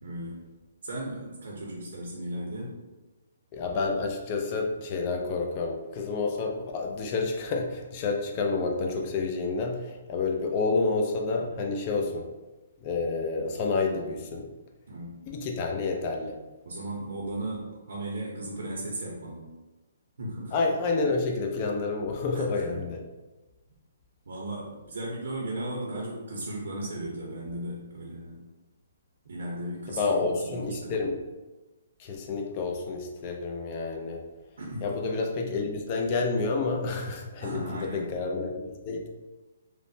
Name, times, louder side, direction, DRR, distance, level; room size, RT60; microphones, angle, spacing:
voice 1, 0.0-0.5 0.8-2.7 14.9-15.2 16.6-19.5 20.2-20.5 22.3-22.8 24.3-28.4 29.2-31.0 34.6-35.2 37.4-38.2, right 1 dB, 75° right, -4 dB, 0.7 m, -36 dB
voice 2, 3.5-12.3 12.8-14.4 15.3-16.4 20.5-23.0 29.9-31.2 32.0-34.2 34.8-37.7 37.9-39.1, left 3 dB, 30° left, 2 dB, 0.4 m, -29 dB
3.1 x 2.1 x 2.6 m, 1.1 s
hypercardioid pair, 155°, 0 cm